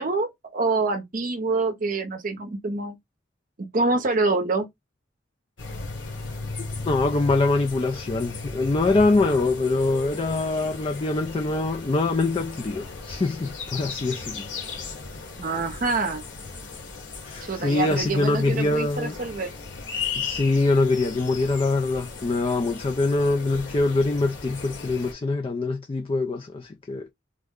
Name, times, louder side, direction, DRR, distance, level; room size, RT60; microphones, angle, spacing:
voice 1, 0.0-3.0 3.6-4.7 15.4-16.2 17.4-19.5, right 3 dB, 45° right, 0.6 m, -26 dB
sound 1, 5.6-25.1, left 4 dB, 65° left, 1.4 m, -36 dB
voice 2, 6.9-14.5 17.2-19.2 20.2-27.1, left 3 dB, 30° left, 0.3 m, -24 dB
3.5 x 2.1 x 3.6 m
head